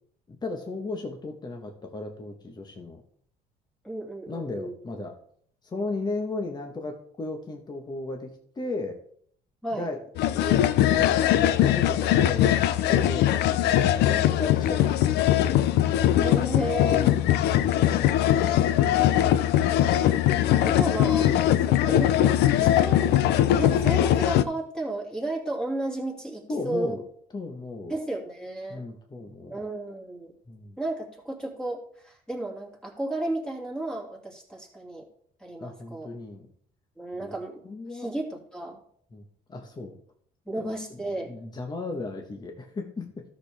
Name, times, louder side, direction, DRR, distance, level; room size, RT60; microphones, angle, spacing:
voice 1, 0.3-3.0 4.3-5.1 5.6-8.3 8.5-9.0 9.7-10.0 10.4-10.6 10.9-11.1 11.6-12.6 12.9-15.6 16.9-17.4 26.5-27.0 27.3-27.9 28.7-29.6 30.5-30.8 35.6-36.5 37.2-37.3 37.6-38.1 39.1-39.2 39.5-39.9 41.1-43.2, left 2 dB, 25° left, 3 dB, 1.3 m, -35 dB
voice 2, 3.8-4.7 9.6-9.9 16.2-17.2 18.4-18.9 20.6-21.3 21.6-27.0 27.9-28.8 29.5-30.3 30.8-35.1 35.4-36.1 37.0-37.6 37.9-38.8 40.5-41.4, right 2 dB, 5° left, -1 dB, 2.8 m, -33 dB
sound 1, 10.2-24.4, left 12 dB, 80° left, 0.5 m, -21 dB
13.0 x 6.7 x 3.5 m, 0.62 s
cardioid pair, 110°, 17 cm